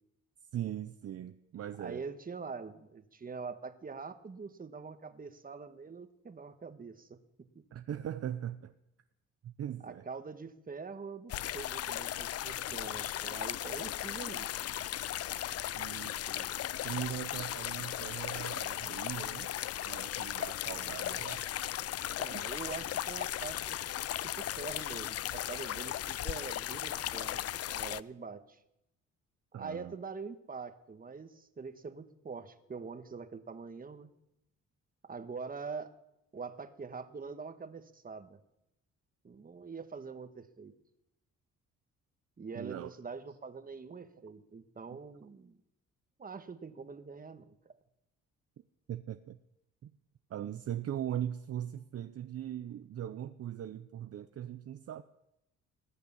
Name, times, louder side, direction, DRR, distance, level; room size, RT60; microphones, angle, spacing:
voice 1, 0.5-2.0 7.7-8.7 9.4-10.1 15.7-16.5 16.8-19.5 19.8-21.4 22.3-22.4 29.5-30.0 42.5-42.9 48.9-49.4 49.8-49.9 50.3-55.0, right 10 dB, 50° right, 10 dB, 0.7 m, -40 dB
voice 2, 1.8-7.2 9.8-14.5 22.2-27.4 27.7-28.6 29.5-34.1 35.0-35.9 36.3-38.4 39.2-40.7 42.4-45.6 46.2-47.7, right 5 dB, 30° right, 9 dB, 1.4 m, -44 dB
sound 1, 11.3-28.0, left 12 dB, 55° left, 0.5 m, -37 dB
19.5 x 6.7 x 9.9 m, 0.85 s
cardioid pair, 90°, 30 cm